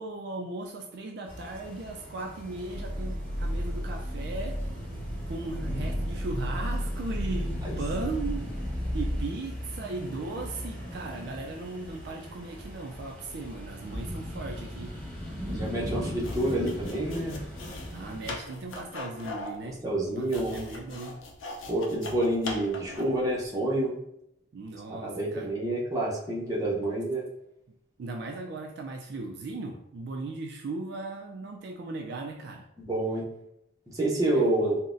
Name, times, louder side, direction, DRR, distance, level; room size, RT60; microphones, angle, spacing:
voice 1, 0.0-4.6 5.3-7.5 7.8-8.5 8.9-14.9 17.9-19.8 20.2-21.2 24.5-25.5 28.0-32.7 34.3-34.7, right 3 dB, 55° right, 1 dB, 0.3 m, -37 dB
sound 1, 1.3-18.3, equal, 10° left, 0.9 m, -38 dB
sound 2, 2.7-9.2, equal, 40° left, 0.8 m, -33 dB
voice 2, 15.5-17.4 19.8-20.6 21.7-24.0 24.9-27.2 32.8-33.2 33.9-34.8, right 1 dB, 20° right, -5 dB, 0.6 m, -28 dB
sound 3, 16.2-23.2, left 2 dB, 85° left, 0.5 m, -40 dB
3.8 x 2.1 x 2.5 m, 0.79 s
head